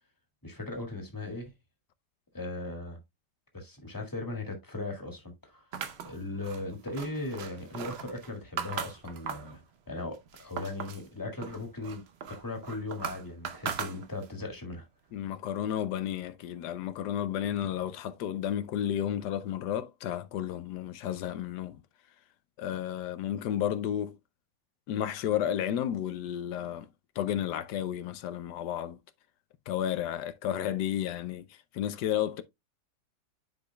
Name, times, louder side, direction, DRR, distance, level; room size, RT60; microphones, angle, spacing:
voice 1, 0.4-1.5 2.3-3.0 3.5-5.7 6.0-9.6 9.9-12.0 12.3-14.9, left 2 dB, 10° left, 1.8 m, -38 dB
sound 1, 5.7-9.6 10.0-11.1 11.4-14.4, right 7 dB, 60° right, 0.7 m, -39 dB
voice 2, 15.1-21.8 22.6-24.2 24.9-26.9 27.2-29.0 29.7-31.5 31.7-32.4, left 10 dB, 75° left, 1.2 m, -32 dB
9.9 x 5.0 x 2.2 m
omnidirectional pair, 1.9 m